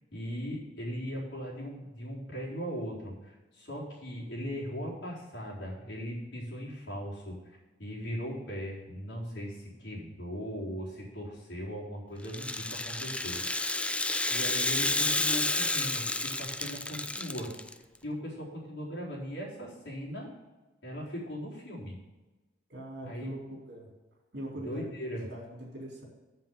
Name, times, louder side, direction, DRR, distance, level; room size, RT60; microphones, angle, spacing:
voice 1, 0.1-13.4 14.3-17.5 18.0-20.3 20.8-22.0 23.0-23.3 24.6-25.3, equal, 70° left, -5 dB, 4.2 m, -39 dB
Rattle (instrument), 12.2-17.7, left 2 dB, 5° left, 0.4 m, -30 dB
voice 2, 22.7-23.9 24.3-24.8 25.1-26.0, right 1 dB, 65° right, -2 dB, 4.0 m, -42 dB
7.7 x 7.6 x 7.0 m, 1.1 s
head